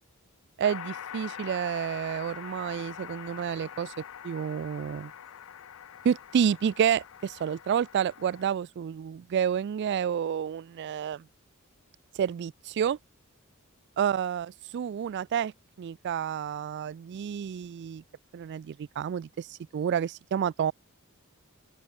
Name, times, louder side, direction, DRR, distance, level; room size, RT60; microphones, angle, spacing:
sound 1, 0.6-8.5, left 9 dB, 70° left, 0.5 m, -44 dB
voice 1, 0.6-3.9 4.2-5.1 6.0-11.2 12.1-13.0 14.0-15.5 15.8-18.0 18.3-20.7, right 8 dB, 55° right, 0.3 m, -29 dB
open air
head